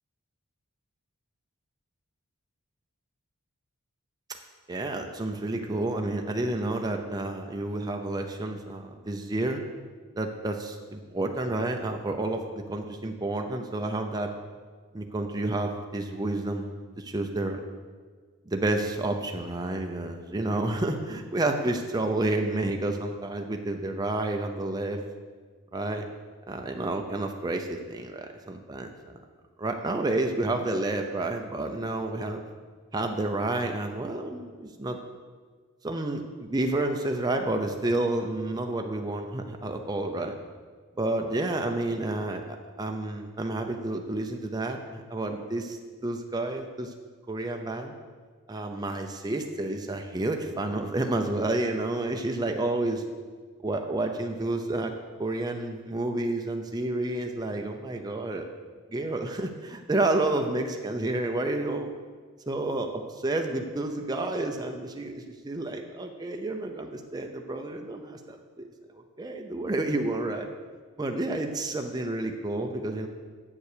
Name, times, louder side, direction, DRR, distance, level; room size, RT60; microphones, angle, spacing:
voice 1, 4.7-9.6 10.2-14.3 14.9-16.7 17.0-17.6 18.5-25.0 25.7-26.0 26.5-29.2 29.6-32.4 32.9-35.0 35.8-40.4 41.0-45.8 46.0-46.9 47.3-47.9 48.5-53.0 53.6-54.9 55.2-58.5 58.9-61.9 62.5-68.7 68.9-70.5 71.0-73.1, right 2 dB, 20° right, 3 dB, 0.6 m, -30 dB
8.0 x 7.2 x 6.6 m, 1.5 s
head